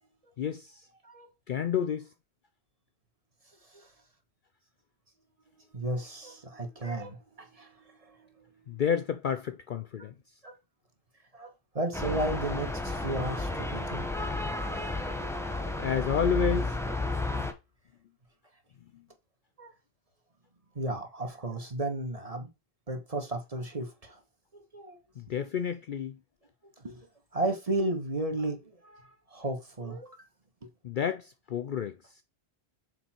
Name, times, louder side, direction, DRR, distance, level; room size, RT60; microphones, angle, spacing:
voice 1, 0.4-0.7 1.5-2.1 8.7-10.1 15.8-16.7 17.4-17.5 25.2-26.2 30.8-32.0, left 7 dB, 60° left, 0.6 m, -30 dB
voice 2, 5.6-9.0 10.0-10.1 10.4-10.5 11.3-11.5 11.7-14.1 14.8-14.9 19.6-19.7 20.7-22.5 22.9-24.2 24.5-25.0 26.6-30.2 30.6-30.7, right 2 dB, 35° right, 1.4 m, -34 dB
sound 1, 11.9-17.5, left 2 dB, 5° left, 0.8 m, -32 dB
6.8 x 4.2 x 4.4 m
omnidirectional pair, 1.1 m